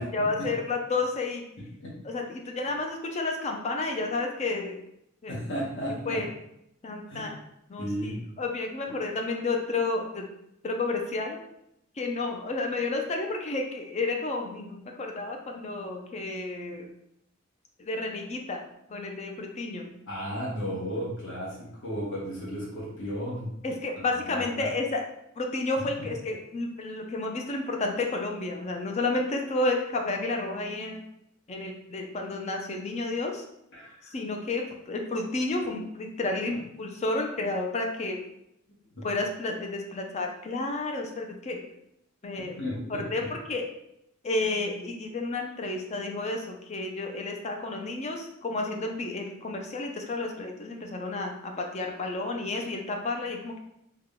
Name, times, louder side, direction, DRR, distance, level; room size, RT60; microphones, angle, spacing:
voice 1, 0.0-1.4 2.0-4.8 5.2-5.4 6.0-6.3 6.8-7.3 7.7-10.3 10.6-11.4 12.0-16.9 17.8-18.6 18.9-19.9 23.6-25.0 25.4-31.0 31.5-33.4 34.1-38.2 39.0-41.6 42.2-42.5 42.9-43.7 44.2-53.6, left 2 dB, 30° left, 2 dB, 0.4 m, -31 dB
voice 2, 1.6-1.9 5.3-6.2 7.1-7.3 7.8-8.3 8.9-9.0 20.1-23.5 24.0-24.7 26.0-26.1 33.7-34.1 39.0-39.1 42.6-43.0, equal, 60° left, -5 dB, 1.1 m, -34 dB
3.6 x 2.2 x 3.6 m, 0.79 s
head